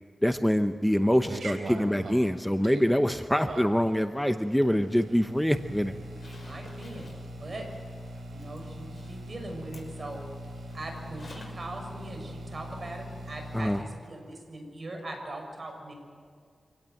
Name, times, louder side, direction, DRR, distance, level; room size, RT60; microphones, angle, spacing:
voice 1, 0.2-5.9 13.5-13.8, equal, 5° left, 8 dB, 0.8 m, -25 dB
sound 1, 0.8-13.8, right 1 dB, 85° right, 3.6 m, -42 dB
Zipper (clothing), 6.0-11.7 12.0-12.1 14.0-14.1 14.5-14.6, left 3 dB, 50° left, 5.8 m, -55 dB
voice 2, 6.2-7.1 7.3-7.7 8.3-10.2 10.7-15.9, right 1 dB, 50° right, 3 dB, 6.5 m, -41 dB
26.0 x 18.0 x 7.9 m, 2.1 s
wide cardioid pair, 80°, 0 cm